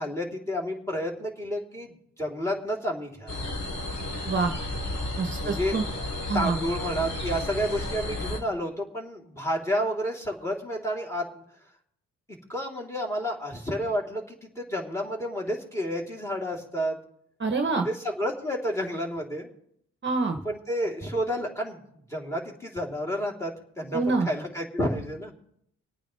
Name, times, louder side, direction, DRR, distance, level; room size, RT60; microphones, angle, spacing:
voice 1, 0.0-3.5 5.4-6.0 6.3-11.4 12.5-17.0 17.7-19.5 20.4-21.8 22.1-25.3, equal, 10° left, 0 dB, 3.5 m, -30 dB
sound 1, 3.3-8.4, left 1 dB, 50° left, 3.3 m, -33 dB
voice 2, 5.2-5.8 6.3-6.6 17.4-17.9 20.0-20.4 23.9-24.3, right 4 dB, 35° right, 5 dB, 1.1 m, -26 dB
26.0 x 9.0 x 3.4 m, 0.72 s
cardioid pair, 70°, 32 cm